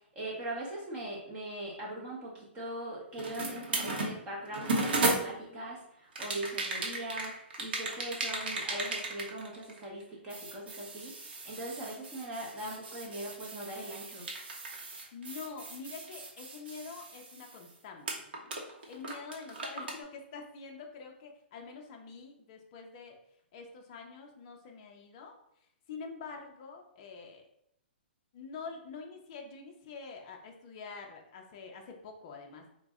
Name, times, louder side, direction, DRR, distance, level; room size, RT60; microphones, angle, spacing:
voice 1, 0.1-11.1 11.4-14.3, right 1 dB, 15° right, -4 dB, 0.7 m, -40 dB
sound 1, 3.2-5.6 6.2-10.0 10.3-17.7 18.1-20.0, right 2 dB, 60° right, 0.8 m, -36 dB
voice 2, 15.1-23.2 23.5-25.3 25.9-27.5 28.3-32.7, left 5 dB, 30° left, 2 dB, 0.5 m, -46 dB
3.8 x 2.0 x 3.5 m, 0.75 s
hypercardioid pair, 175°, 6 cm